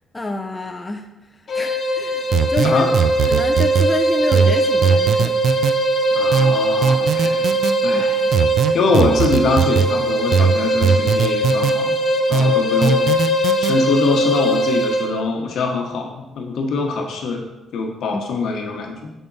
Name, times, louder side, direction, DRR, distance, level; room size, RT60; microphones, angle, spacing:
voice 1, 0.1-2.8 3.3-5.4 7.9-8.3 18.1-18.2, left 3 dB, 20° left, 4 dB, 0.5 m, -28 dB
sound 1, 1.5-15.2, right 1 dB, 45° left, 1.0 m, -20 dB
sound 2, 2.3-3.9 4.3-5.8 6.3-7.7 8.3-9.9 10.3-11.8 12.3-13.7, right 6 dB, 65° right, 0.3 m, -19 dB
voice 2, 6.1-7.5 7.8-8.2 8.7-12.0 12.3-13.1 13.3-17.5 17.7-19.1, left 3 dB, 70° left, 2 dB, 1.0 m, -23 dB
7.2 x 3.6 x 3.9 m, 1.0 s
cardioid pair, 90°, 0 cm